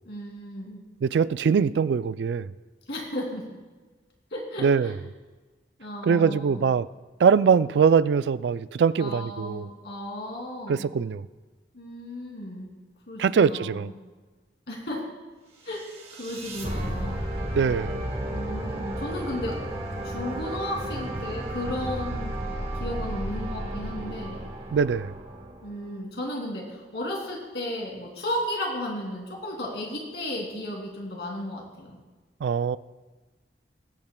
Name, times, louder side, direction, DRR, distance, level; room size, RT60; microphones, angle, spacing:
voice 1, 0.0-0.8 2.9-3.4 4.3-4.9 5.8-6.6 9.0-10.9 11.7-12.7 13.1-13.9 14.7-15.0 15.6-15.8 16.2-17.3 18.2-19.5 20.0-22.5 22.8-24.5 25.6-32.0, left 1 dB, 70° left, -1 dB, 2.7 m, -34 dB
voice 2, 1.0-2.5 4.6-5.0 6.0-6.9 7.2-9.7 10.7-11.3 13.2-13.9 17.5-18.0 24.7-25.2 32.4-32.8, right 6 dB, 75° right, 16 dB, 0.3 m, -22 dB
sound 1, 15.7-25.9, right 1 dB, 35° right, 1.5 m, -33 dB
21.0 x 8.7 x 2.3 m, 1.3 s
head